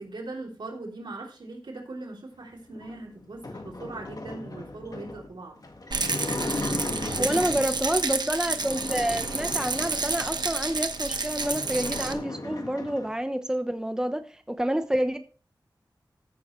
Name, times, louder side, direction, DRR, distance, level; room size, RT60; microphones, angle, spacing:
voice 1, 0.0-5.6 6.0-6.1 6.4-7.8, right 2 dB, 85° right, 3.2 m, -40 dB
sound 1, 2.7-7.9 8.4-10.5 11.0-11.1 11.3-13.2, left 2 dB, 55° left, 1.9 m, -36 dB
Rattle, 5.9-12.1, right 3 dB, 65° right, 1.1 m, -30 dB
voice 2, 7.2-15.2, right 1 dB, 10° right, 1.0 m, -28 dB
14.5 x 7.1 x 3.2 m
wide cardioid pair, 55°, 8 cm